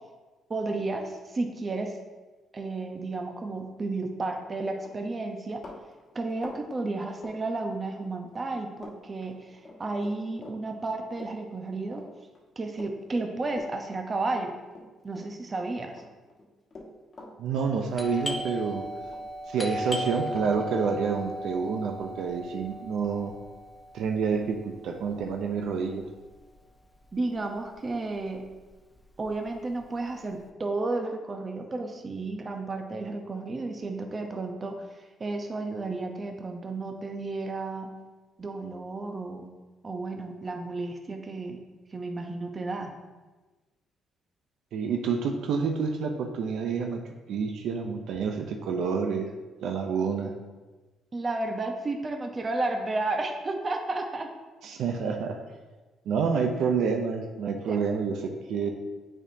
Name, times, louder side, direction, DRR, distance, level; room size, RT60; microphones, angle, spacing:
voice 1, 0.5-2.0 2.5-5.6 6.1-12.0 12.6-14.5 15.0-16.0 27.1-28.4 29.2-37.9 38.4-39.5 39.8-41.6 41.9-42.9 51.1-54.3 56.3-56.4 57.7-57.8, right 2 dB, 35° right, 4 dB, 0.8 m, -32 dB
Run, 4.3-4.5 4.8-8.1 8.4-9.0 9.2-15.6 15.9-18.0 18.3-19.2 19.5-22.8, left 2 dB, 40° left, 1.3 m, -47 dB
voice 2, 17.4-18.8 19.5-23.3 23.9-26.1 44.7-47.0 47.3-49.3 49.6-50.3 54.6-55.4 56.1-58.7, right 5 dB, 80° right, 4 dB, 0.5 m, -28 dB
Doorbell, 17.9-27.3 27.6-27.7 28.3-28.6 29.0-30.4, equal, 10° left, 0.8 m, -37 dB
8.8 x 4.3 x 2.7 m, 1.2 s
cardioid pair, 90°, 0 cm